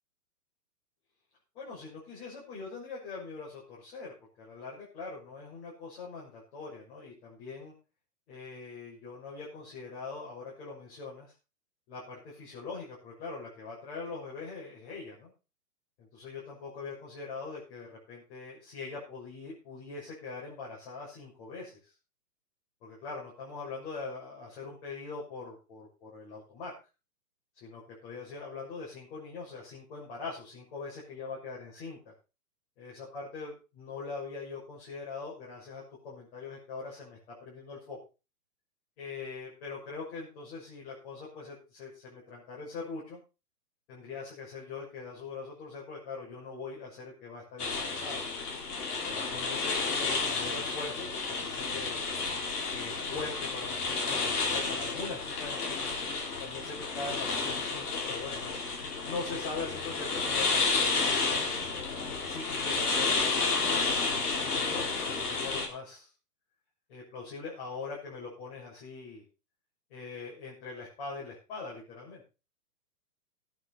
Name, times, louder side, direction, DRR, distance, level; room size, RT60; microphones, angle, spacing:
voice 1, 1.5-7.7 8.3-11.3 11.9-15.3 16.0-21.9 22.8-26.7 27.5-32.1 32.8-38.0 39.0-43.2 43.9-48.2 48.9-52.1 52.7-56.0 56.4-58.6 59.0-61.0 62.2-63.8 64.4-66.1 66.9-69.2 69.9-72.2, left 4 dB, 40° left, -4 dB, 6.6 m, -42 dB
sound 1, 47.6-65.7, left 4 dB, 70° left, 4.4 m, -31 dB
16.5 x 9.8 x 4.1 m, 0.32 s
hypercardioid pair, 150°, 47 cm